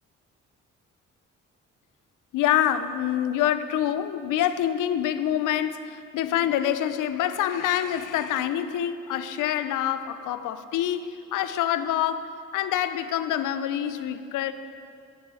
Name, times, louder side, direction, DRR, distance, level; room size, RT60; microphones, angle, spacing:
voice 1, 2.3-14.5, left 11 dB, 75° left, 12 dB, 0.6 m, -26 dB
10.0 x 9.9 x 4.9 m, 2.4 s
supercardioid pair, 60°, 31 cm